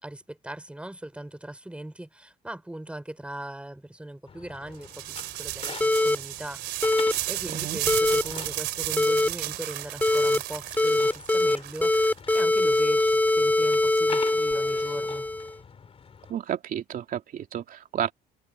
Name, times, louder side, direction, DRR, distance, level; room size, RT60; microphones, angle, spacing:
voice 1, 0.0-7.0 7.3-15.3, right 1 dB, 5° right, 4.6 m, -39 dB
sound 1, 4.3-16.3, left 6 dB, 35° left, 4.1 m, -45 dB
sound 2, 4.8-14.7, right 17 dB, 90° right, 2.8 m, -34 dB
sound 3, 5.8-6.2 6.8-7.1 7.9-8.2 9.0-9.3 10.0-10.4 10.8-11.6 11.8-15.5, left 2 dB, 10° left, 2.1 m, -22 dB
voice 2, 7.5-7.8 16.3-18.1, right 10 dB, 55° right, 2.8 m, -31 dB
cardioid pair, 110°, 17 cm